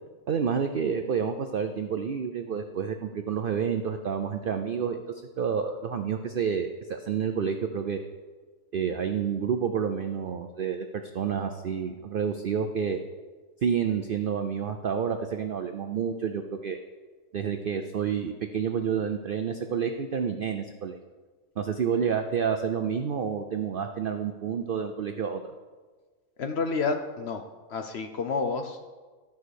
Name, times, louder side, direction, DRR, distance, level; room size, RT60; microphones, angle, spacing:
voice 1, 0.3-5.0 5.4-8.0 8.7-13.0 13.6-16.8 17.3-21.0 21.6-25.4, right 7 dB, 75° right, 6 dB, 0.5 m, -29 dB
voice 2, 26.4-27.4 27.7-28.8, left 4 dB, 60° left, 7 dB, 0.7 m, -29 dB
12.5 x 4.8 x 6.4 m, 1.4 s
omnidirectional pair, 1.6 m